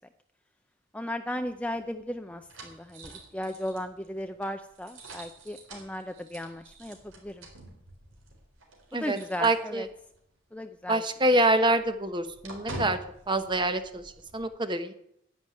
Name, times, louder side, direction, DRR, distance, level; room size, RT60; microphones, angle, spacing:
voice 1, 0.9-7.5 8.9-9.9 10.5-11.0, left 1 dB, 5° left, 7 dB, 0.5 m, -36 dB
sound 1, 1.3-10.2 10.5-10.6 11.0-14.4, right 1 dB, 85° right, 4.1 m, -47 dB
voice 2, 8.9-9.8 10.9-13.0 13.3-14.0 14.3-14.9, right 1 dB, 25° right, 9 dB, 1.0 m, -26 dB
10.5 x 10.0 x 9.1 m, 0.74 s
head